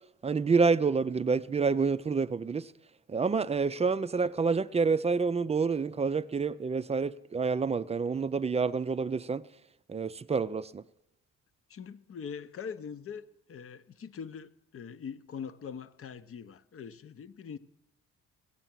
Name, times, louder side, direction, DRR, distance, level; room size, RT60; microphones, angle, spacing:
voice 1, 0.2-2.7 3.1-9.4 9.9-10.8, right 5 dB, 20° right, 0.4 m, -28 dB
voice 2, 11.7-17.6, left 7 dB, 45° left, 0.8 m, -42 dB
16.5 x 6.8 x 7.5 m
cardioid pair, 90°, 30 cm